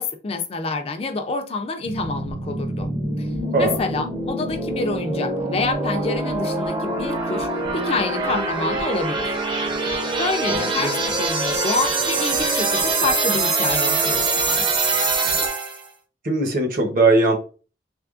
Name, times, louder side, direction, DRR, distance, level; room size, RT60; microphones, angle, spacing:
voice 1, 0.0-2.9 3.2-9.4 9.8-9.9 10.2-14.7, left 3 dB, 35° left, 0.4 m, -27 dB
sound 1, 1.8-15.9, right 3 dB, 30° right, 0.6 m, -24 dB
voice 2, 3.4-3.8 10.5-10.9 16.2-17.3, right 2 dB, 50° right, 0.9 m, -20 dB
3.5 x 3.1 x 2.4 m
head